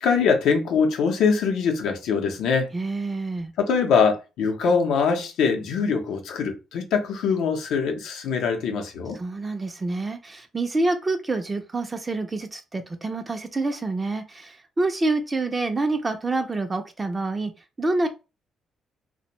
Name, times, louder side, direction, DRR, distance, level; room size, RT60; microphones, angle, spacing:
voice 1, 0.0-2.7 3.6-9.2, left 5 dB, 85° left, 0.6 m, -23 dB
voice 2, 2.7-3.5 9.1-17.5 17.8-18.1, right 2 dB, 25° right, 0.4 m, -27 dB
2.5 x 2.1 x 2.9 m
cardioid pair, 90°, 0 cm